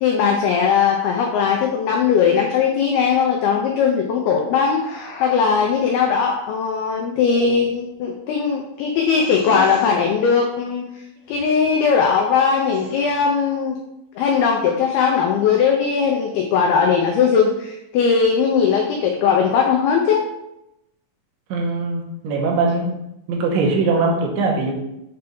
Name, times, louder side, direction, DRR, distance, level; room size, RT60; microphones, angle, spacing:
voice 1, 0.0-10.9 11.3-13.8 14.2-20.2, left 6 dB, 85° left, 1 dB, 2.2 m, -19 dB
sound 1, 4.8-5.7 7.2-7.9 9.0-10.0 11.3-11.7 12.6-13.3, left 3 dB, 65° left, 1.9 m, -37 dB
voice 2, 21.5-23.0 23.3-24.7, right 3 dB, 75° right, -1 dB, 3.3 m, -21 dB
7.8 x 3.3 x 5.3 m, 0.85 s
omnidirectional pair, 5.3 m